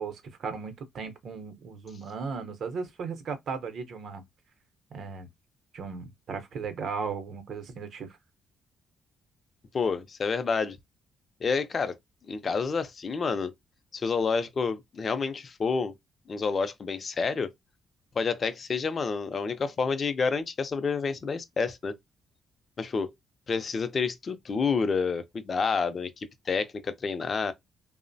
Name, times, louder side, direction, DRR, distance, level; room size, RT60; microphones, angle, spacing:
voice 1, 0.0-4.2 4.9-5.3 5.7-8.2, right 5 dB, 65° right, 0.7 m, -36 dB
voice 2, 9.7-10.8 11.4-12.0 12.3-13.5 13.9-15.9 16.3-17.5 18.2-22.0 22.8-23.1 23.5-27.5, left 5 dB, 40° left, 0.4 m, -29 dB
2.9 x 2.0 x 2.6 m
cardioid pair, 90°, 0 cm